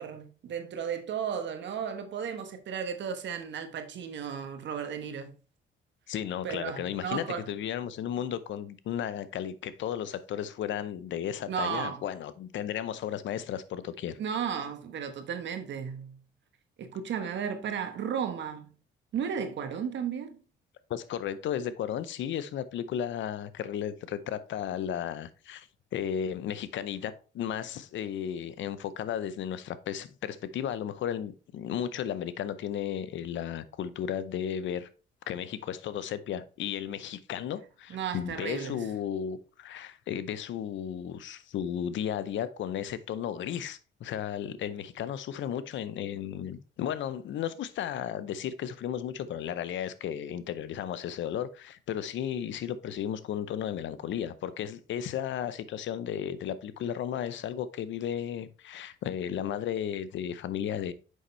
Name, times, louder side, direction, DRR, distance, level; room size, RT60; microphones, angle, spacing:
voice 1, 0.0-5.4 6.4-7.5 11.5-12.0 14.2-16.2 16.8-18.7 19.1-20.4 37.9-38.9, right 7 dB, 65° right, 1.1 m, -34 dB
voice 2, 6.1-14.2 20.9-34.9 35.3-60.9, left 9 dB, 70° left, 0.6 m, -34 dB
6.4 x 5.3 x 3.1 m
cardioid pair, 90°, 20 cm